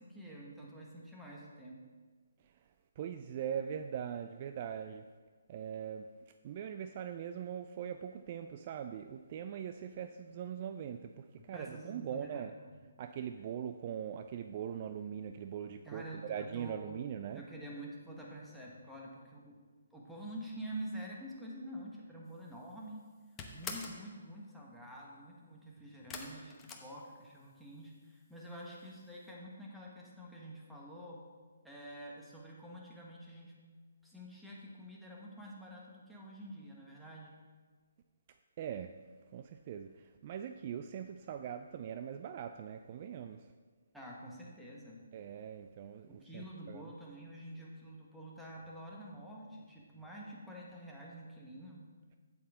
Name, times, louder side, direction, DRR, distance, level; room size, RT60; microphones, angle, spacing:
voice 1, 0.0-1.8 11.4-12.8 15.8-16.9 17.3-19.6 19.9-23.1 23.5-31.2 31.6-33.5 34.0-37.3 43.9-45.0 46.1-51.9, right 1 dB, ahead, -4 dB, 1.4 m, -48 dB
voice 2, 3.0-5.0 5.5-6.1 6.4-12.5 13.0-17.4 38.6-38.9 39.3-43.5 45.1-46.9, right 8 dB, 40° right, 8 dB, 0.3 m, -41 dB
sound 1, 22.4-22.7 23.0-24.1 26.1-27.6 27.9-28.5 28.8-28.9 29.2-29.3, left 5 dB, 15° left, 0.9 m, -45 dB
8.5 x 8.3 x 3.8 m, 1.5 s
figure-of-eight pair, 140°, 0 cm